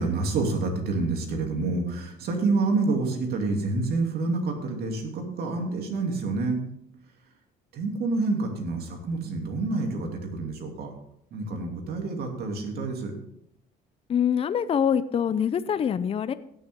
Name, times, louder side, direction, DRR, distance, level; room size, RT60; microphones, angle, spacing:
voice 1, 0.0-6.6 7.7-10.9 11.3-13.2, right 3 dB, 65° right, 2 dB, 2.7 m, -28 dB
voice 2, 14.1-16.3, left 8 dB, 35° left, 13 dB, 0.5 m, -24 dB
16.5 x 7.0 x 3.6 m, 0.75 s
cardioid pair, 110°, 17 cm